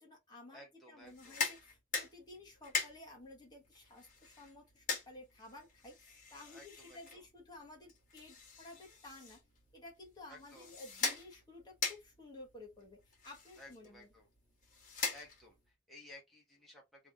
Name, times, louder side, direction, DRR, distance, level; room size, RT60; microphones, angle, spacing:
voice 1, 0.0-0.6 0.9-9.4 9.7-14.1, left 2 dB, 20° left, 1.6 m, -54 dB
voice 2, 0.5-1.4 6.3-7.2 10.3-10.7 13.6-14.3 15.1-17.1, left 1 dB, ahead, 1.5 m, -57 dB
sound 1, 1.0-15.7, left 5 dB, 40° left, 2.0 m, -43 dB
3.5 x 3.3 x 3.8 m
head